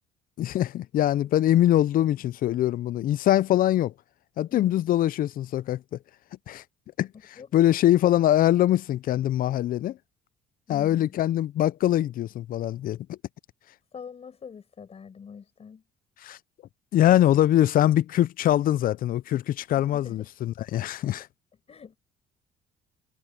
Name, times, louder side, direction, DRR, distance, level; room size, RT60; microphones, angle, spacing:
voice 1, 0.4-3.9 4.4-5.8 6.5-6.6 7.0-7.1 7.5-10.0 10.7-13.2 16.2-16.4 16.9-21.3, left 13 dB, 55° left, 0.5 m, -23 dB
voice 2, 4.5-4.8 7.4-7.5 10.7-11.2 13.9-15.8 19.8-20.3 21.7-22.0, left 6 dB, 35° left, 5.1 m, -44 dB
cardioid pair, 110°, 17 cm